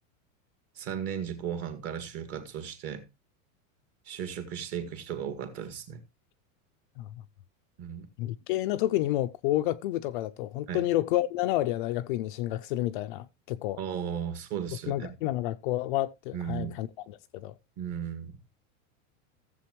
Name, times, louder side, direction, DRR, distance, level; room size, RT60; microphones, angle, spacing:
voice 1, 0.8-3.1 4.1-6.0 7.8-8.1 10.7-10.9 13.8-15.1 16.3-16.7 17.8-18.3, right 8 dB, 35° right, 2.1 m, -35 dB
voice 2, 8.2-13.8 14.9-17.5, left 15 dB, 40° left, 0.4 m, -30 dB
16.0 x 7.7 x 3.0 m
supercardioid pair, 175°, 40 cm